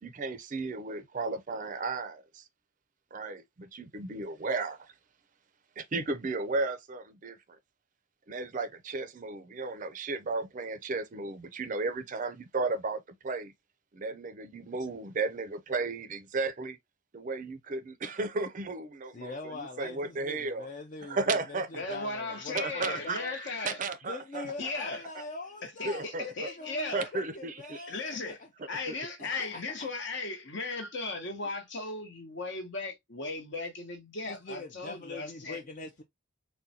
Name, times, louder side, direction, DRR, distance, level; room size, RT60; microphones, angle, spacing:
voice 1, 0.0-2.4 3.1-4.9 5.8-7.4 8.3-13.5 13.9-16.8 17.1-20.7 21.0-21.7 22.5-24.7 25.8-26.5 26.9-27.9 28.9-29.0, right 3 dB, 40° right, 0.4 m, -34 dB
voice 2, 19.1-23.4 24.0-28.4 29.2-29.9 34.3-36.0, left 3 dB, 40° left, 0.4 m, -43 dB
voice 3, 21.7-23.8 24.6-25.0 25.6-27.1 27.9-28.4 28.7-35.6, left 3 dB, 60° left, 0.9 m, -37 dB
3.7 x 2.2 x 2.7 m
head